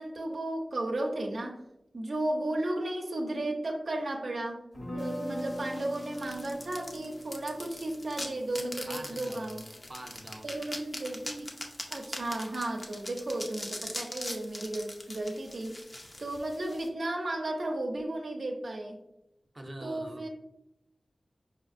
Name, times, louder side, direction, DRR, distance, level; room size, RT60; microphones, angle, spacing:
voice 1, 0.0-1.6 1.9-4.6 4.9-9.6 10.4-11.6 11.9-15.7 16.2-19.0 19.8-20.3, right 1 dB, 75° right, 1 dB, 0.6 m, -34 dB
sound 1, 4.7-10.7, equal, 55° left, 1.3 m, -41 dB
sound 2, 5.0-16.9, left 1 dB, 40° left, 0.6 m, -42 dB
voice 2, 8.9-9.6 9.9-10.5 19.5-20.3, right 1 dB, 35° right, 4 dB, 0.6 m, -44 dB
5.0 x 2.7 x 2.5 m, 0.87 s
wide cardioid pair, 70°, 0 cm